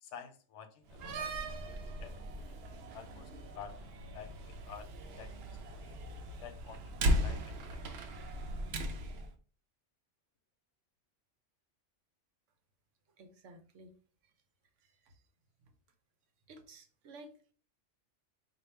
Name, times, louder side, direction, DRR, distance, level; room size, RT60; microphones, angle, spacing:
voice 1, 0.0-2.5 2.9-4.9 5.2-6.0 6.4-7.8, left 7 dB, 80° left, 9 dB, 0.9 m, -51 dB
Slam, 0.9-9.3, equal, 65° right, 0.7 m, -37 dB
voice 2, 13.2-14.0 14.2-14.3 14.8-15.2 15.6-15.7 16.5-17.5, right 2 dB, 90° right, 6 dB, 1.0 m, -55 dB
4.1 x 2.4 x 3.2 m, 0.40 s
omnidirectional pair, 1.2 m